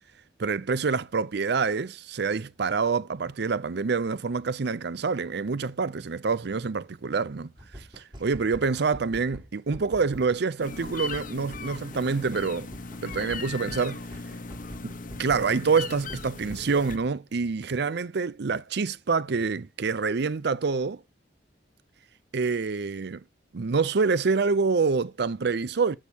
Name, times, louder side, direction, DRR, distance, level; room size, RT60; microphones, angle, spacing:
voice 1, 0.4-12.7 13.0-14.0 15.2-21.0 22.3-23.2 23.5-26.0, right 4 dB, 65° right, 0.6 m, -26 dB
sound 1, 7.6-10.4 10.7-10.8 11.1-12.0 12.3-12.4 12.7-15.6 15.9-17.0, equal, 25° right, 4.1 m, -44 dB
sound 2, 10.6-17.0, left 4 dB, 50° left, 1.1 m, -38 dB
12.5 x 6.5 x 2.9 m
head